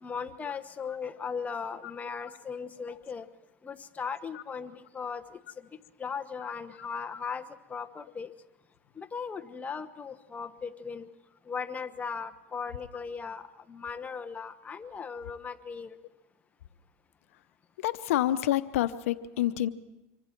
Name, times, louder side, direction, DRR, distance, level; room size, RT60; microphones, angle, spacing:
voice 1, 0.0-3.3 3.6-8.3 9.0-11.1 11.5-16.0, left 6 dB, 20° left, 8 dB, 1.1 m, -38 dB
voice 2, 17.8-19.7, left 13 dB, 85° left, 13 dB, 0.8 m, -27 dB
26.0 x 24.0 x 4.6 m, 1.0 s
supercardioid pair, 120°, 7 cm